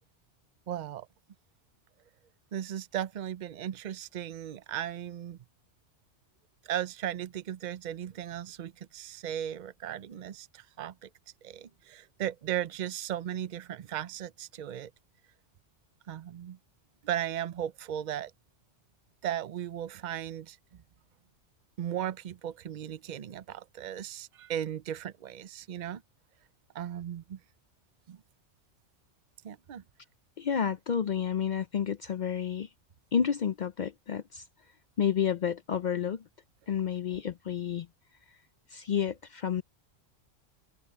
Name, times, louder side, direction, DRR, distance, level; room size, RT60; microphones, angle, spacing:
voice 1, 0.7-1.1 2.5-5.4 6.7-11.1 11.4-14.9 16.1-16.6 17.0-18.3 19.2-20.6 21.8-26.0 26.7-27.4 28.1-28.2 29.4-29.8, right 10 dB, 50° right, 0.6 m, -36 dB
voice 2, 30.4-32.7 33.1-34.4 35.0-36.2 36.7-37.9 38.7-39.6, left 8 dB, 55° left, 0.5 m, -30 dB
open air
omnidirectional pair, 1.2 m